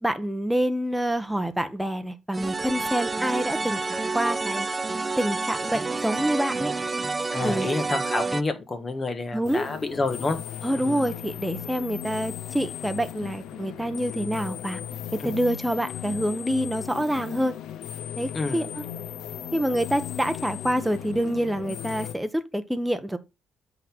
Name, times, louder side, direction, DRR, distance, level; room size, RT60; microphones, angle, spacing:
voice 1, 0.0-4.7 5.2-6.7 7.4-7.7 9.3-9.7 10.6-14.8 15.1-17.5 18.2-18.8 19.5-23.2, right 1 dB, 5° right, 0.9 m, -27 dB
sound 1, 2.3-8.4, right 3 dB, 25° right, 0.4 m, -29 dB
voice 2, 7.3-10.4 10.7-11.1 15.2-15.3 18.3-18.7, left 3 dB, 35° left, 1.4 m, -29 dB
sound 2, 9.4-22.1, left 10 dB, 85° left, 0.5 m, -36 dB
8.1 x 3.9 x 4.4 m
cardioid pair, 90°, 0 cm